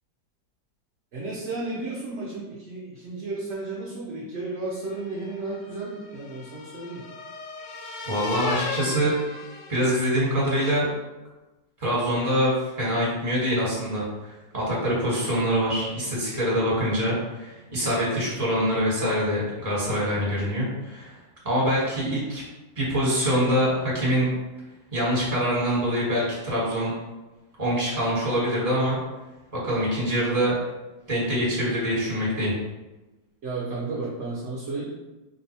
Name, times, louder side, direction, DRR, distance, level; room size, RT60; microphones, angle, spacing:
voice 1, 1.1-7.0 33.4-34.9, right 3 dB, 60° right, -5 dB, 0.8 m, -33 dB
sound 1, 4.9-10.3, left 4 dB, 75° left, 0.6 m, -36 dB
voice 2, 8.1-9.1 9.7-10.9 11.8-21.2 21.4-22.4 22.8-24.3 24.9-26.9 27.6-29.0 29.5-30.6 31.1-32.5, equal, 25° right, -7 dB, 1.2 m, -24 dB
2.9 x 2.3 x 4.1 m, 1.1 s
omnidirectional pair, 1.8 m